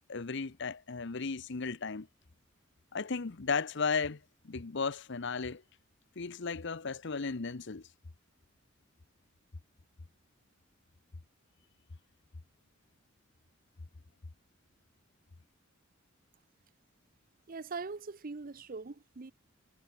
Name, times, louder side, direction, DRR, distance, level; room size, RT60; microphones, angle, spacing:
voice 1, 0.1-2.1 2.9-5.6 6.2-7.9, left 4 dB, 60° left, 0.9 m, -35 dB
voice 2, 17.5-19.3, right 4 dB, 45° right, 0.7 m, -41 dB
head